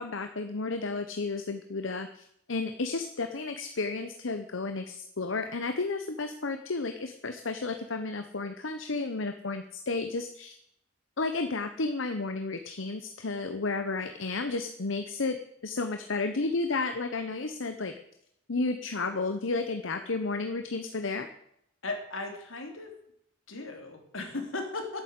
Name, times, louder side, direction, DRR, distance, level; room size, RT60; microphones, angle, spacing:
voice 1, 0.0-10.5 11.2-15.4 15.6-17.9 18.5-21.3, left 3 dB, 70° left, 7 dB, 1.0 m, -32 dB
voice 2, 21.8-22.9 23.5-25.0, left 2 dB, 85° left, 3 dB, 3.1 m, -36 dB
11.5 x 9.2 x 8.3 m, 0.72 s
head